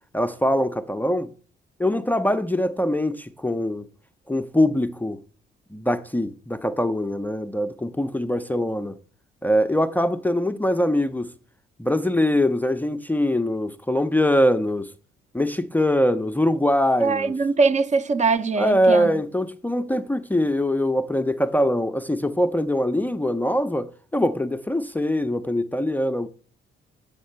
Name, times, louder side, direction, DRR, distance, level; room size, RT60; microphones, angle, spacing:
voice 1, 0.1-1.3 1.8-3.8 4.3-5.2 5.7-9.0 9.4-11.3 11.8-14.9 15.3-17.3 18.6-26.3, left 1 dB, 10° left, 0.4 m, -23 dB
voice 2, 17.0-19.1, right 4 dB, 35° right, 0.6 m, -22 dB
7.2 x 4.3 x 5.4 m
cardioid pair, 90°, 20 cm